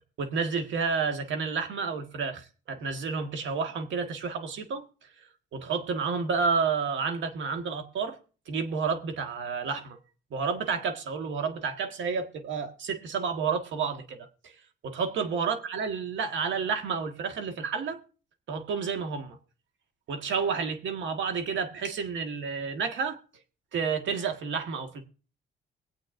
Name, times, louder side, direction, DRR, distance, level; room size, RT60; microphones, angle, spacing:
voice 1, 0.2-4.8 5.5-8.2 8.5-10.0 10.3-14.5 14.8-18.0 18.5-19.4 20.1-23.2 23.7-25.0, right 5 dB, 70° right, 1.7 m, -30 dB
23.5 x 8.2 x 2.6 m
cardioid pair, 90°, 20 cm